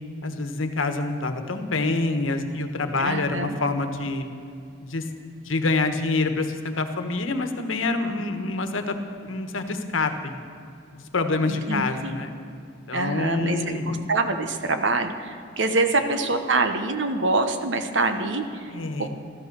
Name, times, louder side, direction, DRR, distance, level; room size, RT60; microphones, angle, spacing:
voice 1, 0.2-4.3 4.8-5.0 5.4-8.9 9.2-10.4 10.9-12.3 12.9-14.0 15.9-16.1 18.7-19.1, left 3 dB, 80° left, 7 dB, 1.3 m, -26 dB
voice 2, 3.0-3.6 11.4-12.2 12.9-18.7 19.0-19.1, right 3 dB, 65° right, 7 dB, 1.2 m, -25 dB
14.0 x 12.5 x 6.7 m, 2.5 s
head